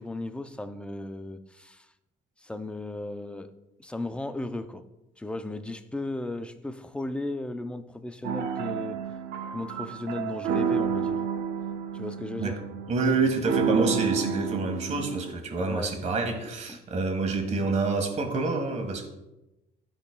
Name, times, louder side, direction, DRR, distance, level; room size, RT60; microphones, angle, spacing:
voice 1, 0.0-1.9 2.4-3.5 3.8-4.8 5.2-9.0 9.5-11.2 11.9-12.6 15.7-15.9 16.7-16.8, left 2 dB, 5° left, 9 dB, 0.5 m, -35 dB
sound 1, 8.2-15.3, right 7 dB, 85° right, 0.7 m, -30 dB
voice 2, 12.9-19.1, right 3 dB, 45° right, 4 dB, 1.5 m, -27 dB
12.0 x 5.3 x 2.2 m, 0.98 s
cardioid pair, 110°, 17 cm